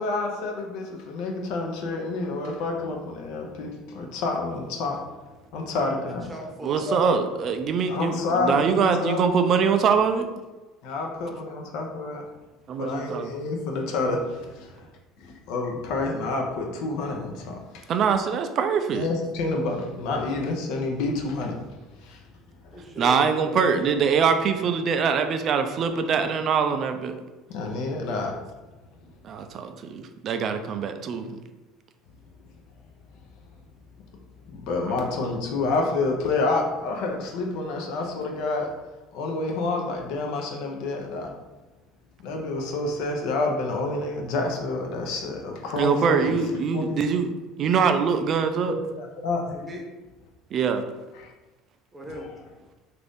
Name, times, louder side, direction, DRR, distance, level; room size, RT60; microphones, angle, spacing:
voice 1, 0.0-5.0 5.5-6.3 6.9-7.0 7.9-9.2 10.8-12.3 12.8-14.8 15.2-17.9 18.9-21.6 22.0-22.2 27.5-28.4 34.5-38.7 39.1-41.3 42.2-46.3 46.7-46.9 48.6-49.5 51.1-51.3, left 3 dB, 75° left, 2 dB, 0.5 m, -28 dB
voice 2, 6.0-7.2 22.7-23.9 49.5-49.9 51.9-52.3, right 1 dB, 20° right, 0 dB, 0.7 m, -38 dB
voice 3, 6.6-10.3 12.7-13.3 17.9-19.1 23.0-27.2 29.2-31.4 34.9-35.0 45.8-47.3 47.6-48.7 50.5-50.8, right 6 dB, 45° right, 8 dB, 0.3 m, -23 dB
2.6 x 2.5 x 3.4 m, 1.2 s
supercardioid pair, 110°, 0 cm